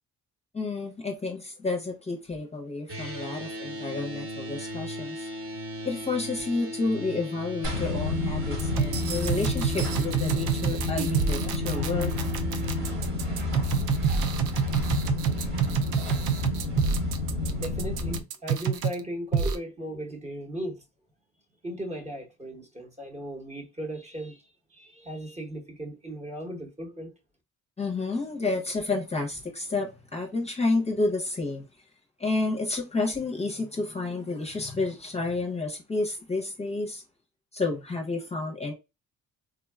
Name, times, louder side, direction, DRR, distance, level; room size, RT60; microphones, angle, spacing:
voice 1, 0.5-5.3 5.8-12.4 27.8-31.6 32.2-37.0 37.5-38.7, left 3 dB, 20° left, 0.7 m, -30 dB
sound 1, 2.9-13.0, left 1 dB, 45° right, 1.3 m, -37 dB
sound 2, 7.6-18.2, left 2 dB, 65° right, 1.7 m, -30 dB
sound 3, 8.6-19.0 19.3-19.5, right 7 dB, 90° right, 0.5 m, -28 dB
voice 2, 17.6-20.8 21.6-27.1, equal, 20° right, 1.0 m, -37 dB
3.6 x 2.2 x 2.3 m
cardioid pair, 90°, 30 cm